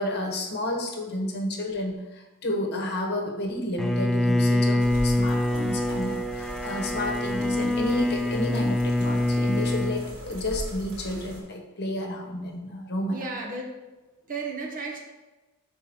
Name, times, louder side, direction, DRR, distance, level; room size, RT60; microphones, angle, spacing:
voice 1, 0.0-13.2, left 1 dB, 50° left, 1 dB, 1.1 m, -31 dB
Bowed string instrument, 3.8-10.1, left 1 dB, ahead, 0.4 m, -25 dB
sound 1, 4.8-11.4, left 1 dB, 85° right, 2.5 m, -40 dB
voice 2, 13.1-13.8 14.3-15.0, right 3 dB, 40° right, -1 dB, 1.1 m, -34 dB
5.7 x 4.0 x 6.0 m, 1.1 s
head